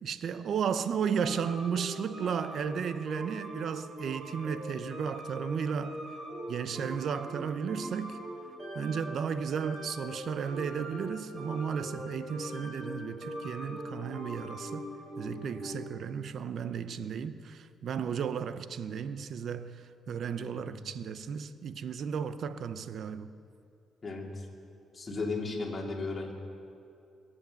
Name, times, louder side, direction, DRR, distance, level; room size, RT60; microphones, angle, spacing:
voice 1, 0.0-6.0 6.5-8.2 8.7-14.8 15.2-23.3, right 7 dB, 60° right, 0.7 m, -34 dB
sound 1, 1.2-16.0, equal, 45° right, 4.3 m, -42 dB
voice 2, 20.4-20.8 24.0-24.5 24.9-26.3, left 3 dB, 35° left, 2.8 m, -35 dB
23.5 x 8.3 x 7.0 m
cardioid pair, 90°, 0 cm